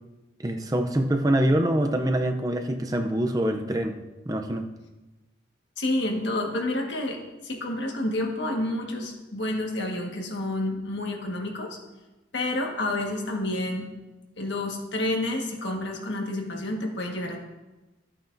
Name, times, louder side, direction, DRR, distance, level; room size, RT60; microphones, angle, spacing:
voice 1, 0.4-4.6, right 1 dB, 20° right, 5 dB, 0.5 m, -25 dB
voice 2, 5.8-11.8 12.3-13.9 14.4-17.4, left 1 dB, 85° left, 1 dB, 1.6 m, -29 dB
13.5 x 8.6 x 2.7 m, 1.1 s
head